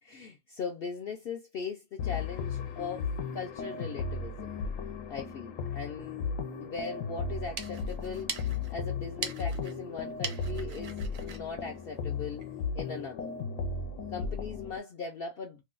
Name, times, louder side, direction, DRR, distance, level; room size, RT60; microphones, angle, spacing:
voice 1, 0.0-4.6 5.1-6.3 6.6-8.4 8.7-12.4 12.7-13.4 14.1-15.6, left 5 dB, 60° left, 0.6 m, -39 dB
sound 1, 2.0-14.8, left 5 dB, 80° left, 1.0 m, -36 dB
sound 2, 7.3-12.6, right 5 dB, 55° right, 0.6 m, -42 dB
2.7 x 2.2 x 3.7 m
omnidirectional pair, 1.3 m